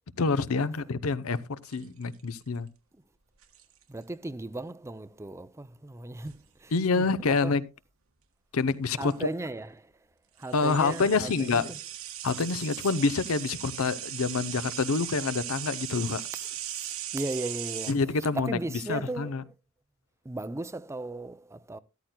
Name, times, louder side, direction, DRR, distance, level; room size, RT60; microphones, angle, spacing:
voice 1, 0.2-2.7 6.7-7.6 8.5-9.3 10.5-11.7 12.2-16.2 17.9-18.6 18.9-19.4, left 4 dB, 75° left, 0.7 m, -27 dB
sound 1, 1.7-2.4 3.4-3.8 6.2-6.5 8.7-8.8 9.0-9.1 10.4-17.9, right 11 dB, 70° right, 1.4 m, -38 dB
voice 2, 3.9-7.5 9.0-9.9 10.4-11.8 16.3-16.4 16.7-18.0 18.3-19.4 20.2-21.8, right 2 dB, 15° right, 0.5 m, -37 dB
13.0 x 13.0 x 2.2 m
head